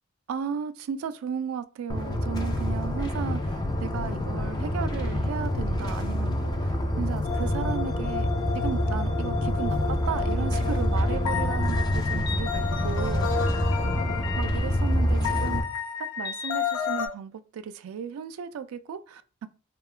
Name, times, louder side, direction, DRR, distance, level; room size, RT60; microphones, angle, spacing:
voice 1, 0.3-8.3 8.5-13.5 13.8-15.6 16.0-19.5, right 7 dB, 90° right, 0.3 m, -35 dB
sound 1, 1.9-15.6, left 1 dB, 20° left, 0.3 m, -27 dB
sound 2, 7.2-17.1, left 6 dB, 85° left, 0.4 m, -32 dB
2.8 x 2.2 x 2.4 m
head